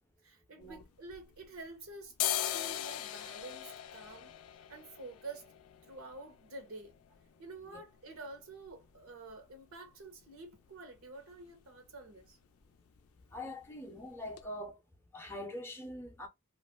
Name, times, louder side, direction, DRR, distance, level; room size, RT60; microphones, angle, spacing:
voice 1, 0.2-4.3 4.7-5.5 5.8-6.9 7.4-12.4, right 3 dB, 75° right, 0.9 m, -49 dB
sound 1, 0.6-1.7 2.0-9.7 10.0-10.1 10.4-11.0 11.3-11.5 11.8-12.0 12.3-13.0 13.3-13.5 14.0-14.1 14.4-14.5, left 12 dB, 90° left, 0.4 m, -40 dB
voice 2, 13.3-14.8 15.1-16.3, left 1 dB, 10° left, 0.5 m, -43 dB
2.4 x 2.0 x 3.6 m
head